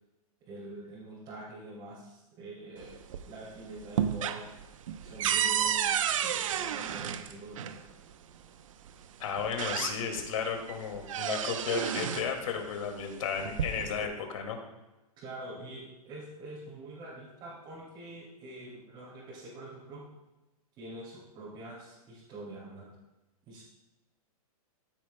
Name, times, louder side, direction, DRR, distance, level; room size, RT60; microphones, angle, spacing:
voice 1, 0.4-3.0 3.2-4.5 5.0-7.8 15.2-20.1 20.8-22.9 23.5-23.6, right 1 dB, 25° right, -8 dB, 2.7 m, -45 dB
sound 1, 2.8-3.5 3.8-7.8 8.9-9.0 9.4-10.3 10.7-12.3 13.3-14.1, right 9 dB, 60° right, 0.7 m, -31 dB
voice 2, 9.2-14.6, left 6 dB, 60° left, 3 dB, 2.2 m, -33 dB
15.0 x 9.0 x 2.2 m, 1.0 s
hypercardioid pair, 160°, 19 cm